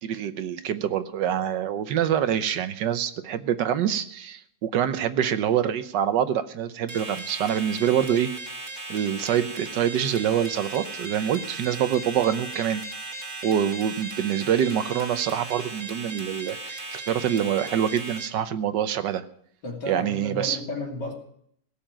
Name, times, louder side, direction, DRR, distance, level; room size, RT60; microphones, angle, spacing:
voice 1, 0.0-8.3 8.9-12.8 13.4-19.2 19.9-20.6, right 9 dB, 75° right, 11 dB, 1.4 m, -25 dB
sound 1, 6.9-18.3, right 3 dB, 45° right, 2.2 m, -37 dB
voice 2, 19.6-21.1, left 1 dB, 70° left, 1 dB, 3.4 m, -33 dB
17.0 x 7.2 x 8.9 m, 0.66 s
omnidirectional pair, 1.9 m